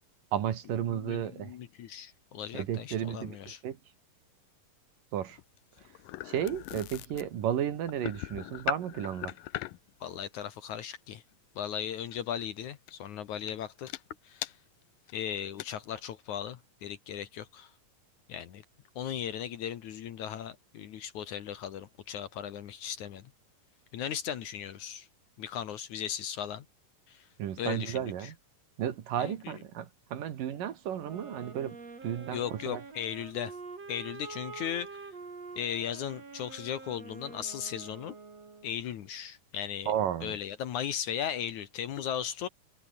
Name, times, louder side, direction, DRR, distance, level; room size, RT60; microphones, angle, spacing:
voice 1, 0.3-1.5 2.5-3.4 3.6-3.8 5.1-5.4 6.2-9.3 27.4-28.4 28.8-31.8 32.0-32.8 39.9-40.4, right 10 dB, 75° right, 3.5 m, -33 dB
voice 2, 0.9-3.6 10.0-11.2 11.6-14.5 15.1-17.7 18.3-18.6 19.0-23.2 23.9-25.1 25.4-26.7 27.1-27.2 27.6-28.3 29.2-29.5 32.3-33.6 33.9-35.1 35.6-38.2 38.6-39.9 40.2-42.5, left 9 dB, 65° left, 2.6 m, -37 dB
sound 1, 5.3-9.9 12.1-12.3 12.9-13.1 13.5-13.6 13.9-14.0 14.4-14.5 15.1-15.2 15.4-15.7, left 17 dB, 80° left, 2.5 m, -39 dB
sound 2, 31.0-38.8, right 4 dB, 45° right, 5.9 m, -46 dB
omnidirectional pair, 4.0 m